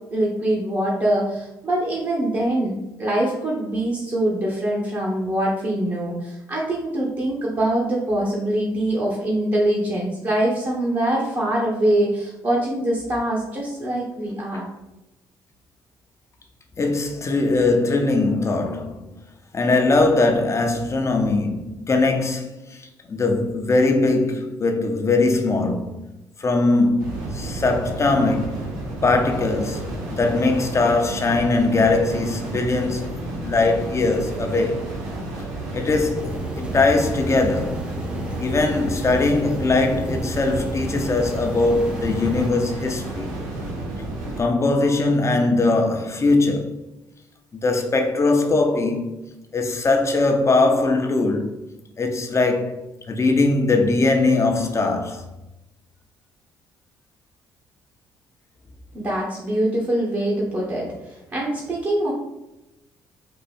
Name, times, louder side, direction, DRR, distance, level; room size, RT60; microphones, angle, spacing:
voice 1, 0.1-14.7 58.9-62.1, right 1 dB, 40° right, 1.4 m, -23 dB
voice 2, 16.8-19.1 19.5-26.1 26.4-28.6 29.0-33.1 33.4-34.8 35.7-37.8 38.4-43.4 44.4-46.7 47.5-49.1 49.5-51.6 52.0-55.3, left 3 dB, 35° left, 0.8 m, -21 dB
sound 1, 27.0-44.4, right 1 dB, 90° right, 1.1 m, -31 dB
sound 2, 36.2-42.5, right 1 dB, 10° right, 0.5 m, -33 dB
4.5 x 2.6 x 4.2 m
hypercardioid pair, 60°, 9 cm